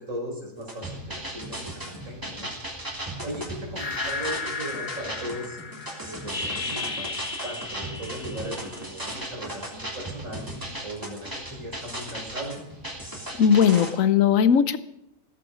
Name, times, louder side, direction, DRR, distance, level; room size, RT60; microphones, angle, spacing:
voice 1, 0.0-2.5 3.2-5.6 6.0-10.4 10.8-12.6, right 1 dB, 80° right, 0 dB, 5.2 m, -37 dB
sound 1, 0.6-13.9, right 1 dB, 15° right, 3.1 m, -37 dB
sound 2, 3.8-9.2, left 4 dB, 40° left, 1.2 m, -35 dB
voice 2, 13.4-14.8, left 7 dB, 80° left, 14 dB, 1.3 m, -18 dB
16.5 x 14.0 x 5.1 m, 0.84 s
omnidirectional pair, 1.4 m